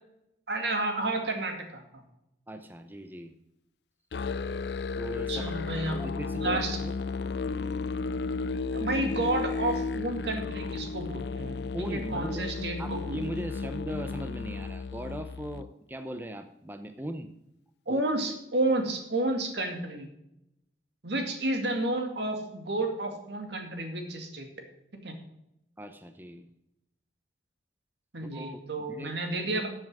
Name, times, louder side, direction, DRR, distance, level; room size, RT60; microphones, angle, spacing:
voice 1, 0.5-2.0 5.3-6.0 6.4-6.8 8.7-13.2 17.9-20.1 21.0-24.5 24.9-25.1 28.1-29.7, right 2 dB, 70° right, 4 dB, 2.1 m, -31 dB
voice 2, 2.5-3.4 5.0-5.5 5.9-6.9 11.7-12.4 12.8-17.3 17.9-18.0 25.8-26.5 28.3-29.2, right 1 dB, 10° right, 8 dB, 0.6 m, -39 dB
Musical instrument, 4.1-15.7, left 4 dB, 70° left, 0.4 m, -33 dB
13.5 x 7.4 x 4.8 m, 0.84 s
head